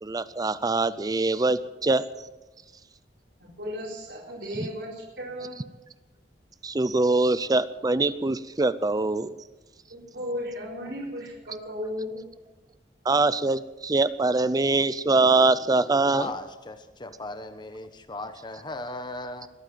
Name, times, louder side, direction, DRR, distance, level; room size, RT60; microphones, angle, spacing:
voice 1, 0.0-2.0 4.6-4.7 6.6-9.3 13.1-16.3, right 3 dB, 20° right, 14 dB, 0.5 m, -23 dB
voice 2, 3.4-5.6 9.9-12.2, left 1 dB, 75° right, -4 dB, 4.4 m, -35 dB
voice 3, 16.1-19.5, left 2 dB, 25° left, 8 dB, 1.1 m, -37 dB
21.5 x 9.0 x 7.5 m, 1.1 s
head